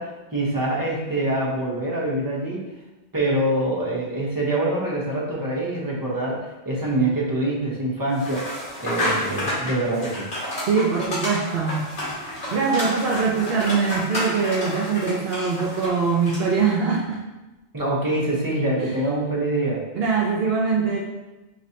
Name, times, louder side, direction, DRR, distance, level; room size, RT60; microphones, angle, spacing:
voice 1, 0.0-2.6 3.1-8.5 8.8-10.3 17.7-19.8, right 1 dB, 20° right, -5 dB, 0.8 m, -25 dB
sound 1, 8.2-16.6, left 1 dB, 85° left, 2.0 m, -30 dB
voice 2, 10.7-11.9 12.5-17.2 19.9-21.0, right 5 dB, 65° right, -2 dB, 0.7 m, -22 dB
5.9 x 3.1 x 2.8 m, 1.1 s
omnidirectional pair, 1.2 m